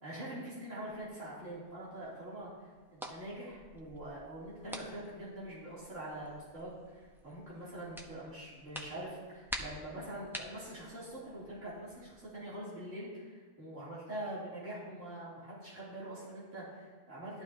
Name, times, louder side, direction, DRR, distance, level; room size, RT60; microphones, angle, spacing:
voice 1, 0.0-2.5 2.9-17.4, right 1 dB, 85° right, -9 dB, 3.3 m, -44 dB
sound 1, 0.9-12.1, equal, ahead, 0.7 m, -49 dB
12.0 x 12.0 x 2.8 m, 1.4 s
omnidirectional pair, 1.2 m